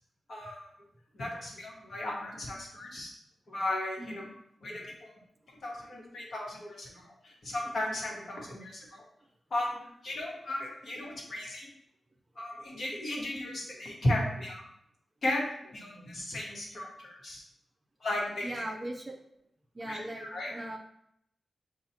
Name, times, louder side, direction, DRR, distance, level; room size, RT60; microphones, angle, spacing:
voice 1, 0.3-0.7 1.1-3.1 3.5-4.2 4.6-5.1 5.6-9.0 9.5-11.7 12.4-14.6 15.2-17.4 18.0-18.6 19.9-20.5, left 1 dB, 60° left, -3 dB, 1.2 m, -35 dB
voice 2, 4.0-4.4 18.4-19.2 19.7-20.8, right 1 dB, 20° right, 3 dB, 0.4 m, -39 dB
7.0 x 2.4 x 2.8 m, 0.73 s
wide cardioid pair, 155°, 0 cm